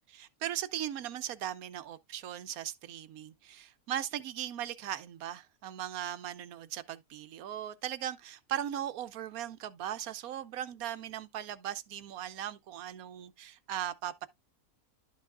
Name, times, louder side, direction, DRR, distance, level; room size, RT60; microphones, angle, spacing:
voice 1, 0.1-14.3, right 11 dB, 80° right, 1.2 m, -38 dB
12.0 x 4.8 x 2.4 m
omnidirectional pair, 1.5 m